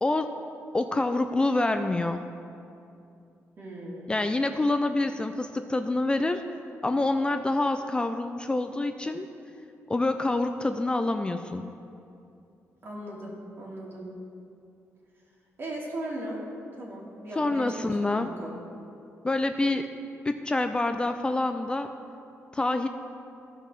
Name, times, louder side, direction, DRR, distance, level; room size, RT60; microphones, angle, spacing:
voice 1, 0.0-0.3 0.7-2.2 4.1-6.4 6.8-9.3 9.9-11.6 17.4-18.3 19.2-19.9 20.2-21.9 22.5-22.9, left 2 dB, 15° left, 7 dB, 0.4 m, -26 dB
voice 2, 3.6-4.1 12.8-14.1 15.6-16.4 16.8-18.6, right 1 dB, 45° right, -4 dB, 2.8 m, -38 dB
14.5 x 5.7 x 6.1 m, 2.6 s
cardioid pair, 100°, 5 cm